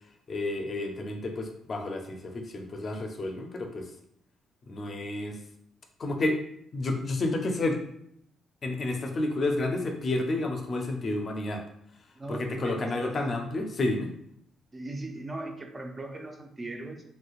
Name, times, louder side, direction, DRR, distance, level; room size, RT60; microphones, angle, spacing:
voice 1, 0.3-3.9 4.7-5.4 6.0-6.4 6.7-7.8 8.6-11.6 12.3-14.1, left 2 dB, 45° left, 4 dB, 0.5 m, -30 dB
voice 2, 12.2-13.2 14.7-17.0, right 2 dB, 25° right, 4 dB, 0.5 m, -38 dB
3.1 x 3.0 x 2.4 m, 0.71 s
cardioid pair, 90°, 0 cm